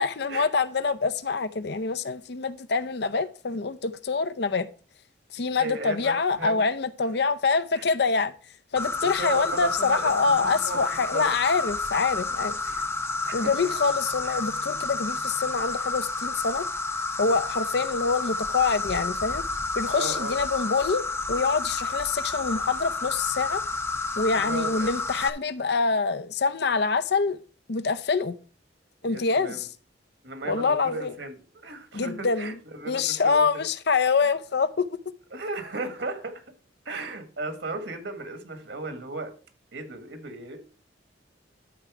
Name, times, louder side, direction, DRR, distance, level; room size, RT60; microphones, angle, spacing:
voice 1, 0.0-4.7 5.3-8.3 8.7-12.6 13.3-16.7 17.2-19.4 19.7-21.0 21.3-23.6 24.2-27.4 27.7-28.3 29.0-29.7 30.4-31.1 31.9-32.6 32.9-35.0, left 4 dB, 60° left, 0.6 m, -25 dB
voice 2, 5.6-6.6 7.8-7.9 9.0-10.8 11.1-11.3 12.6-12.8 13.2-13.7 14.2-14.4 19.9-20.4 24.3-24.9 29.0-29.6 30.2-33.6 35.3-36.4 36.8-39.3 39.7-40.6, right 2 dB, 70° right, 1.7 m, -35 dB
Insect, 8.8-25.3, left 3 dB, 15° left, 0.6 m, -30 dB
13.0 x 4.5 x 4.8 m
head